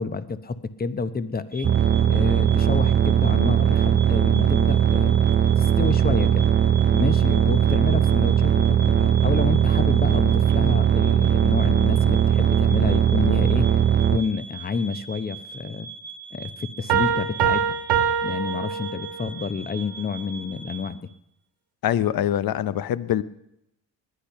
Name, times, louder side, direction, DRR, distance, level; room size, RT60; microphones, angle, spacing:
voice 1, 0.0-1.7 2.1-5.2 5.6-6.5 6.9-13.7 14.1-15.9 16.3-17.8 18.2-21.0, left 4 dB, 20° left, 13 dB, 0.8 m, -29 dB
sound 1, 1.5-20.8, right 5 dB, 5° left, 2.1 m, -41 dB
sound 2, 1.6-14.2, right 9 dB, 30° right, 0.5 m, -19 dB
sound 3, 16.9-19.4, right 7 dB, 85° right, 1.6 m, -24 dB
voice 2, 21.8-23.2, left 11 dB, 60° left, 16 dB, 0.8 m, -24 dB
19.5 x 10.5 x 5.6 m, 0.83 s
cardioid pair, 110°, 41 cm